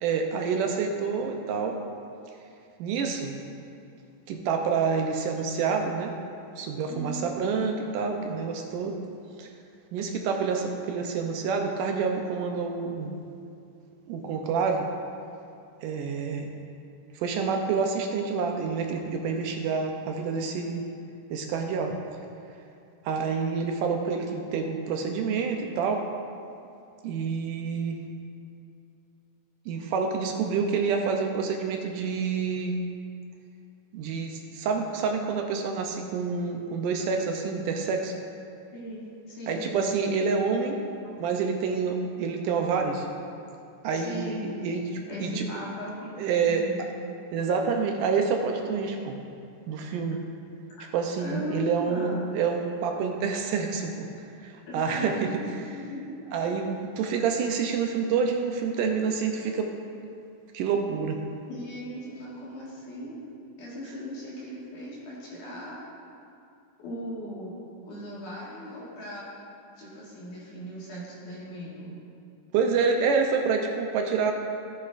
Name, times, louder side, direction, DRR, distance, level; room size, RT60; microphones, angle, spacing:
voice 1, 0.0-1.8 2.8-3.3 4.3-6.1 6.6-9.0 9.4-9.5 9.9-13.1 14.1-14.9 15.8-16.5 17.2-20.9 21.3-22.0 23.1-26.1 27.0-28.0 29.7-32.8 33.9-38.1 39.5-40.8 41.2-43.1 43.8-45.5 46.2-46.7 47.3-49.2 49.7-50.2 50.9-54.1 54.4-55.4 56.3-59.7 60.5-61.2 72.5-74.3, right 5 dB, 80° right, 3 dB, 2.0 m, -28 dB
voice 2, 6.9-7.2 38.7-39.9 43.9-44.4 45.1-46.1 46.4-46.8 51.2-52.3 54.7-56.0 61.5-63.2 63.6-65.8 66.8-67.5 67.9-69.3 69.8-72.0, equal, 65° left, -6 dB, 3.1 m, -38 dB
13.5 x 8.2 x 2.5 m, 2.5 s
omnidirectional pair, 4.0 m